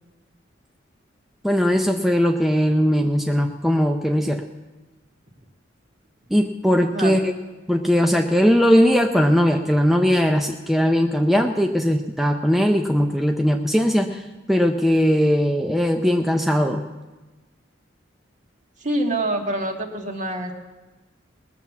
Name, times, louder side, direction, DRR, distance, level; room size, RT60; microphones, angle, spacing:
voice 1, 1.4-4.4 6.3-7.3 7.7-16.8, equal, ahead, 3 dB, 0.5 m, -19 dB
voice 2, 6.8-7.2 18.8-20.5, right 1 dB, 40° right, 3 dB, 1.6 m, -26 dB
19.5 x 7.2 x 7.1 m, 1.1 s
head